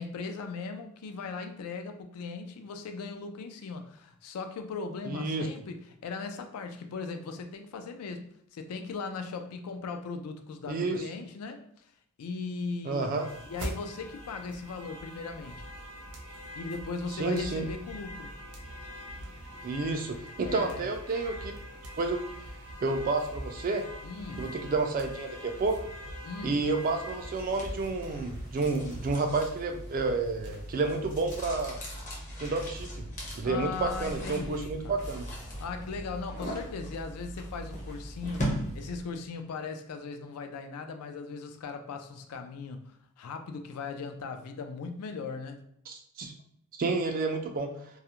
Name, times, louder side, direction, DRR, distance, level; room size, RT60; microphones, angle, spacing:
voice 1, 0.0-11.7 12.2-13.1 13.5-15.7 16.6-18.3 20.4-20.9 24.0-24.5 26.2-26.7 33.4-35.0 35.6-45.6, left 4 dB, 75° left, 7 dB, 0.3 m, -38 dB
voice 2, 5.1-5.5 10.7-11.0 12.8-13.3 17.1-17.6 19.6-21.5 22.0-22.2 22.8-23.9 24.4-25.8 26.4-31.8 32.4-33.1 33.4-35.3 45.9-46.3 46.7-47.7, right 3 dB, 40° right, 5 dB, 0.3 m, -30 dB
sound 1, 13.0-31.4, equal, 85° right, 0.6 m, -43 dB
sound 2, 26.8-39.2, equal, 35° left, 0.6 m, -39 dB
2.3 x 2.0 x 2.8 m, 0.71 s
head